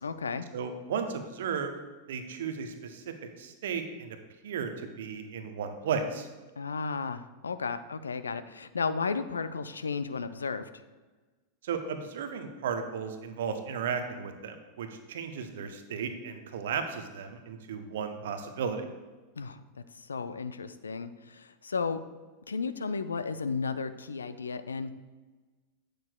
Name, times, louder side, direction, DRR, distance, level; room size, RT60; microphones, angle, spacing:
voice 1, 0.0-0.5 6.6-10.7 19.4-19.6 20.0-22.0 22.5-24.9, left 5 dB, 75° left, 12 dB, 0.3 m, -34 dB
voice 2, 0.5-1.7 2.1-4.2 4.4-6.3 11.6-18.9, right 6 dB, 60° right, 6 dB, 0.7 m, -35 dB
8.7 x 6.3 x 2.2 m, 1.3 s
figure-of-eight pair, 90°, 0 cm